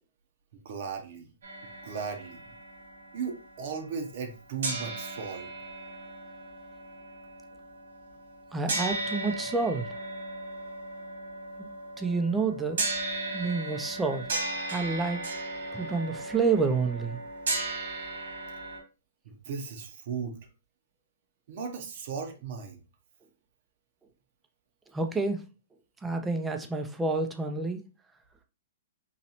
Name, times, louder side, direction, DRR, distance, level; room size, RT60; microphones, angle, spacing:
voice 1, 0.6-1.3 1.8-2.4 3.1-5.5 19.3-20.4 21.5-22.8, right 6 dB, 55° right, 0.7 m, -36 dB
sound 1, 1.4-4.3 4.6-18.8, right 2 dB, 80° right, 1.7 m, -36 dB
voice 2, 8.5-9.9 11.6-11.7 12.0-12.9 13.3-14.2 14.7-15.2 15.7-17.2 24.9-25.4 26.0-27.8, right 4 dB, 10° right, 0.4 m, -28 dB
4.0 x 3.0 x 2.8 m
hypercardioid pair, 155°, 0 cm